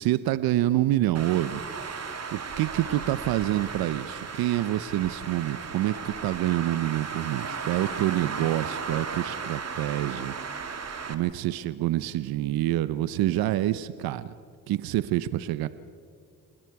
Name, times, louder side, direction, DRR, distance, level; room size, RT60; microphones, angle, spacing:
voice 1, 0.0-1.6 1.9-2.0 2.3-10.3 11.1-14.3 14.7-15.7, right 14 dB, 75° right, 15 dB, 0.7 m, -27 dB
Traffic noise roadway noise, 1.1-11.1, right 5 dB, 45° right, 2.1 m, -36 dB
29.5 x 20.0 x 4.8 m, 2.3 s
supercardioid pair, 55°, 36 cm